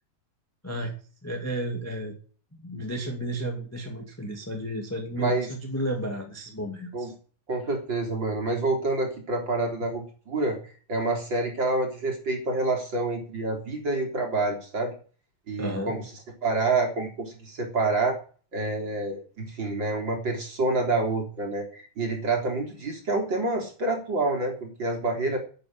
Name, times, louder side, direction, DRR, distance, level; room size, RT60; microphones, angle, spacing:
voice 1, 1.2-2.1 2.6-7.1 15.6-15.9, right 1 dB, 5° left, 2 dB, 1.9 m, -32 dB
voice 2, 5.2-5.5 6.9-7.1 7.5-10.6 10.9-14.9 15.5-16.0 16.4-18.2 18.5-25.4, right 2 dB, 35° right, 2 dB, 4.1 m, -27 dB
11.5 x 8.6 x 8.9 m, 0.40 s
omnidirectional pair, 4.0 m